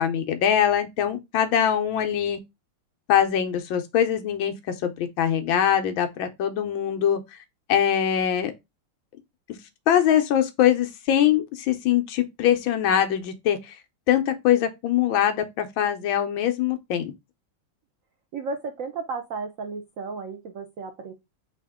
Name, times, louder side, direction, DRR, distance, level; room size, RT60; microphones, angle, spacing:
voice 1, 0.0-2.4 3.1-4.5 4.8-7.4 7.7-8.5 9.9-13.8 14.1-17.1, left 10 dB, 75° left, 1.4 m, -22 dB
voice 2, 18.3-21.1, right 4 dB, 70° right, 0.7 m, -33 dB
4.8 x 2.9 x 3.5 m
omnidirectional pair, 2.3 m